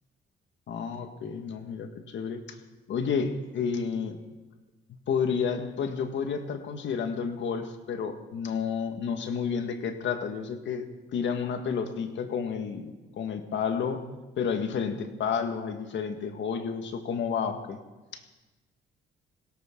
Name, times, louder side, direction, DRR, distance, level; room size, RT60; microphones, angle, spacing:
voice 1, 0.7-2.6 2.9-4.2 5.1-14.0 14.4-17.8 18.1-18.2, left 6 dB, 70° left, 6 dB, 1.8 m, -31 dB
20.0 x 17.5 x 3.9 m, 1.2 s
cardioid pair, 90°, 20 cm